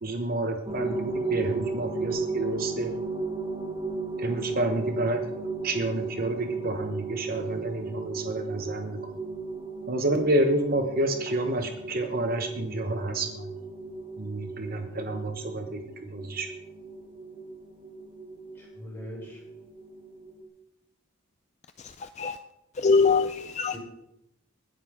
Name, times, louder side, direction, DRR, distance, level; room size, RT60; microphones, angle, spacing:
voice 1, 0.0-2.9 4.2-5.2 5.6-9.0 9.9-13.5 14.2-16.5, right 1 dB, 45° right, 6 dB, 1.1 m, -29 dB
sound 1, 0.7-20.4, right 3 dB, 25° right, 1.5 m, -35 dB
voice 2, 18.5-19.4 23.7-23.8, equal, 10° left, -5 dB, 6.3 m, -41 dB
voice 3, 21.8-22.4 22.8-23.8, left 4 dB, 35° left, 10 dB, 0.4 m, -24 dB
20.0 x 11.0 x 3.6 m, 0.86 s
head